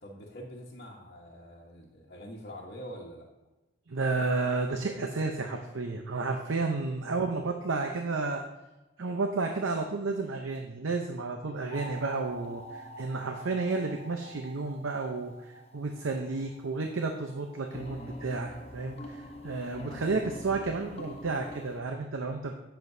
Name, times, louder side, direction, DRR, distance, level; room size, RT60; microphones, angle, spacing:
voice 1, 0.0-3.3, equal, 50° left, -4 dB, 1.2 m, -45 dB
voice 2, 3.9-8.4 9.0-22.5, right 3 dB, 80° right, 4 dB, 0.7 m, -32 dB
sound 1, 11.7-21.8, equal, 30° left, 0.8 m, -45 dB
10.5 x 7.9 x 2.7 m, 1.1 s
head